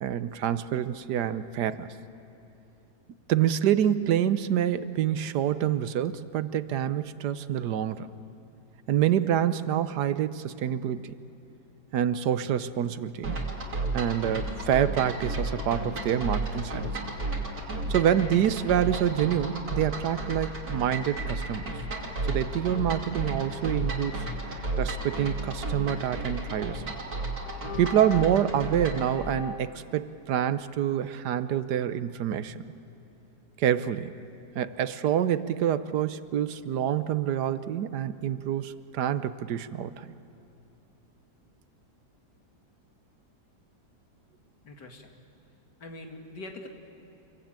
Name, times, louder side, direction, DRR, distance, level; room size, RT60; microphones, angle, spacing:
voice 1, 0.0-1.9 3.3-8.1 8.9-11.1 11.9-13.4 13.9-16.9 17.9-21.7 22.2-24.3 24.8-26.8 27.8-32.6 33.6-34.1 34.5-40.1, right 10 dB, 75° right, 13 dB, 1.4 m, -27 dB
sound 1, 13.2-29.1, right 2 dB, 60° right, 3.4 m, -33 dB
sound 2, 13.6-29.0, equal, 5° right, 1.3 m, -48 dB
sound 3, 26.7-27.0 27.4-28.5 29.1-29.8, left 4 dB, 35° left, 1.1 m, -40 dB
voice 2, 44.6-45.1 45.8-46.7, left 2 dB, 80° left, 3 dB, 2.9 m, -43 dB
27.5 x 23.0 x 9.0 m, 2.9 s
omnidirectional pair, 1.8 m